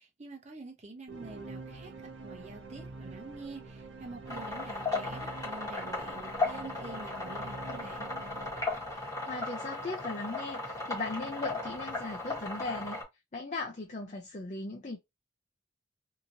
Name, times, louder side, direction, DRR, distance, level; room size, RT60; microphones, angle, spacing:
voice 1, 0.0-1.9 2.2-8.1, right 2 dB, 40° right, 0.8 m, -47 dB
sound 1, 1.1-9.5, right 3 dB, 80° right, 0.7 m, -46 dB
sound 2, 4.3-13.0, left 3 dB, 20° left, 1.4 m, -36 dB
voice 2, 8.9-13.0 13.3-15.0, left 3 dB, 40° left, 0.6 m, -38 dB
2.9 x 2.8 x 2.6 m
head